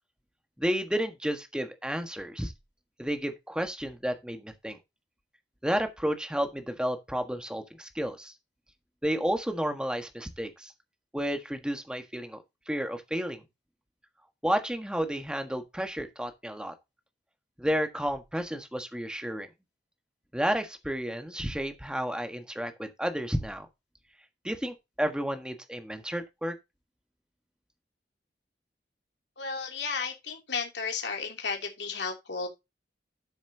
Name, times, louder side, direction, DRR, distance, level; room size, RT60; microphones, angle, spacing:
voice 1, 0.6-2.5 3.0-4.8 5.6-8.3 9.0-10.7 11.1-13.4 14.4-16.7 17.6-19.5 20.3-23.7 24.4-26.5, equal, 5° right, 1.4 m, -31 dB
voice 2, 29.4-32.5, left 5 dB, 70° left, 2.9 m, -33 dB
12.5 x 7.2 x 2.8 m
head